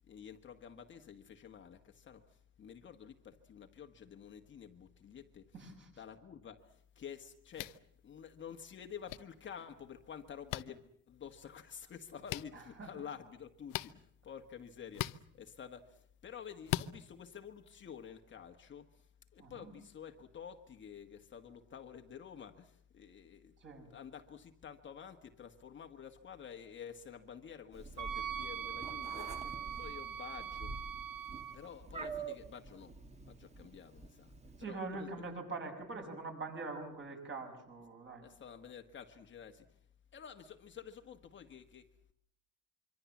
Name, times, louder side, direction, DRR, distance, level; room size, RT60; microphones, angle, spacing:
voice 1, 0.1-5.5 6.0-10.8 11.1-19.1 19.3-23.5 23.9-29.5 29.8-30.7 31.5-32.9 33.3-34.3 34.7-35.1 38.2-39.8 40.1-42.1, left 8 dB, 35° left, 1.5 m, -50 dB
voice 2, 5.5-5.9 12.5-12.9 19.4-19.7 23.6-23.9 29.4-29.8 34.6-38.2, right 3 dB, 35° right, 6.6 m, -44 dB
sound 1, 7.5-7.8 9.1-9.2 10.5-10.6 12.3-12.4 13.7-13.9 14.9-15.2 16.7-16.9, left 16 dB, 70° left, 0.9 m, -37 dB
Meow, 27.7-34.6, right 4 dB, 20° right, 2.2 m, -47 dB
Wind instrument woodwind instrument, 28.0-31.6, right 9 dB, 65° right, 2.4 m, -42 dB
25.5 x 25.0 x 7.3 m
cardioid pair, 155°, 34 cm